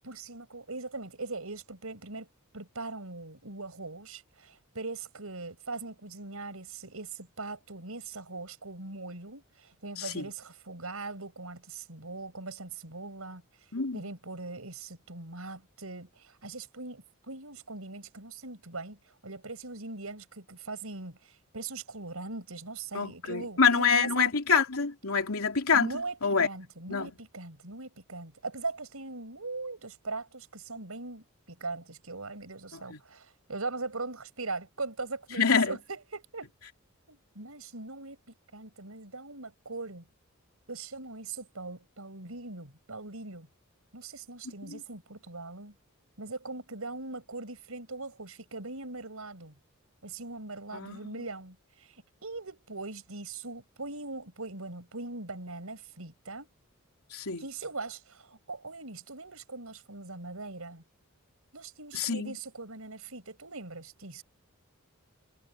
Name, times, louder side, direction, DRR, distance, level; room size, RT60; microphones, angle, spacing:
voice 1, 0.0-2.3 2.5-13.4 13.9-24.3 25.7-36.5 37.1-38.2 38.5-40.1 40.7-43.5 43.9-45.7 46.2-49.5 50.0-56.5 57.4-60.8 61.5-64.2, right 3 dB, 80° right, 5.4 m, -40 dB
voice 2, 10.0-10.3 13.7-14.0 22.9-25.9 26.2-26.5 26.9-27.1 32.7-33.0 35.4-35.8 44.7-44.8 50.7-51.0 57.1-57.4 61.9-62.3, left 5 dB, 85° left, 3.0 m, -26 dB
head